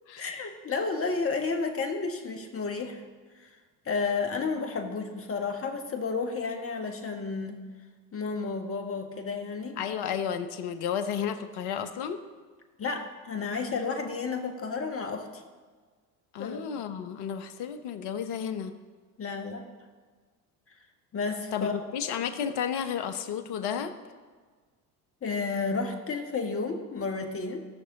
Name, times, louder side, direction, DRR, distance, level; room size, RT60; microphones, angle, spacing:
voice 1, 0.2-3.0 3.4-3.5 3.8-7.6 8.1-9.8 12.8-15.3 16.4-16.6 19.2-19.7 21.1-21.8 25.2-27.7, left 4 dB, 30° left, 5 dB, 1.6 m, -31 dB
voice 2, 9.8-12.2 16.3-18.7 21.5-23.9, left 8 dB, 55° left, 10 dB, 1.0 m, -32 dB
16.5 x 6.2 x 4.0 m, 1.5 s
hypercardioid pair, 65°, 47 cm